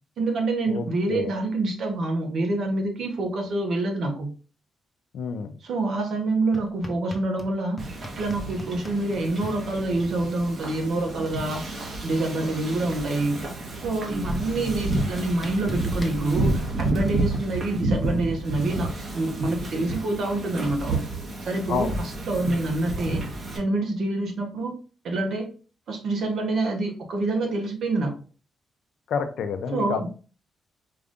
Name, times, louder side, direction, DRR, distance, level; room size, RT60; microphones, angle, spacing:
voice 1, 0.2-4.3 5.6-7.9 8.2-11.6 12.0-13.4 13.7-21.0 21.4-23.3 23.5-24.8 25.0-25.5 25.9-28.2 29.7-30.1, right 2 dB, 65° right, 3 dB, 1.2 m, -27 dB
voice 2, 0.7-1.3 5.1-5.5 21.7-21.9 29.1-30.1, left 6 dB, 75° left, 8 dB, 0.6 m, -28 dB
sound 1, 6.5-7.5 7.8-9.5 10.8-10.9 11.2-11.6 11.8-13.2 14.1-14.2 14.7-17.4, equal, 10° left, 0.7 m, -39 dB
Wind / Ocean, 7.8-23.6, right 2 dB, 45° right, 1.3 m, -30 dB
4.6 x 2.6 x 3.5 m, 0.37 s
cardioid pair, 100°, 0 cm